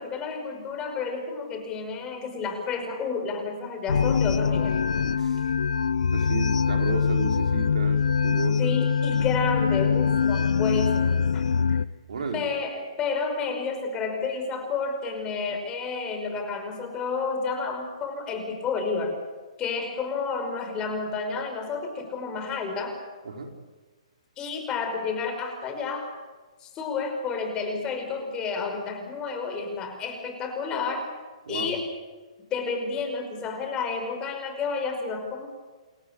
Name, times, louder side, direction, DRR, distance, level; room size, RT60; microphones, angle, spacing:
voice 1, 0.0-4.8 8.6-11.4 12.3-19.2 19.6-23.0 24.4-26.1 26.6-31.1 31.5-31.9 32.5-35.5, left 4 dB, 20° left, 5 dB, 5.3 m, -30 dB
sound 1, 3.9-11.9, left 6 dB, 80° left, 0.7 m, -23 dB
voice 2, 5.1-5.4 6.1-8.7 12.1-12.5 23.2-23.5 31.5-31.7, right 3 dB, 75° right, 3 dB, 4.9 m, -32 dB
29.0 x 14.5 x 9.0 m, 1.3 s
hypercardioid pair, 140°, 4 cm